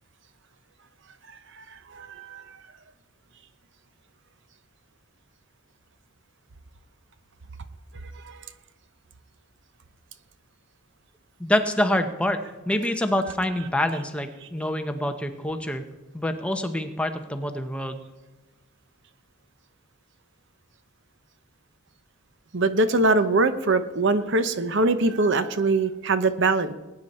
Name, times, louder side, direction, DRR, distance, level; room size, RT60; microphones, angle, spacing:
voice 1, 1.5-2.6 8.1-8.4 22.5-26.7, right 2 dB, 55° right, 11 dB, 0.8 m, -23 dB
voice 2, 11.4-15.8 16.1-18.0, left 1 dB, 5° left, 6 dB, 0.8 m, -26 dB
20.5 x 9.7 x 4.3 m, 1.1 s
head